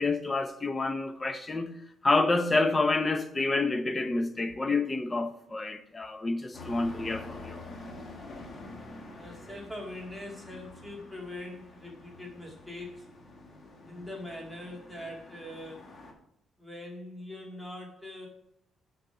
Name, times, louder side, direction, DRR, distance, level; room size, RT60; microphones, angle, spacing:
voice 1, 0.0-1.7 2.0-7.6, left 3 dB, 25° left, 0.9 m, -28 dB
sound 1, 6.5-16.1, left 2 dB, 45° left, 1.7 m, -47 dB
voice 2, 9.1-13.1 13.8-16.1 16.6-18.3, left 1 dB, 5° left, 2.1 m, -42 dB
6.7 x 5.3 x 7.0 m
cardioid pair, 90°, 0 cm